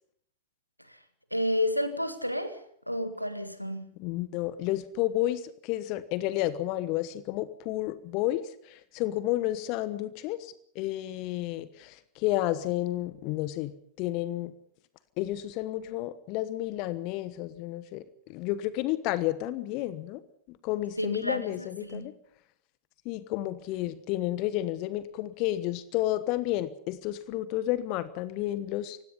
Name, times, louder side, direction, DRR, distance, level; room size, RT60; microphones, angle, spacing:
voice 1, 1.3-3.9 21.0-22.1, left 1 dB, 90° left, 1.9 m, -31 dB
voice 2, 4.0-13.7 14.0-14.5 15.2-18.0 18.3-20.2 20.5-22.1 23.0-29.0, left 15 dB, 45° left, 1.1 m, -31 dB
29.0 x 16.5 x 5.6 m
figure-of-eight pair, 90°, 0 cm